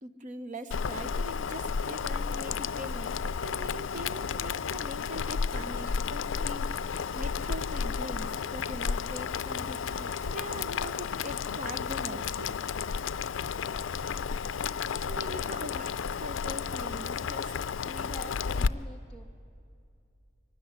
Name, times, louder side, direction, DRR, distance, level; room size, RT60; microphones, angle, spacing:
voice 1, 0.0-12.6 14.9-15.9 16.2-17.5 17.8-18.1 18.6-18.7, right 1 dB, 40° right, 11 dB, 0.9 m, -42 dB
Boiling, 0.7-18.7, left 6 dB, 70° left, 0.4 m, -32 dB
voice 2, 4.3-4.7 9.5-9.8 14.1-14.4 14.9-15.8 17.8-19.2, equal, 5° left, 1 dB, 0.6 m, -50 dB
22.5 x 13.0 x 9.6 m, 2.5 s
head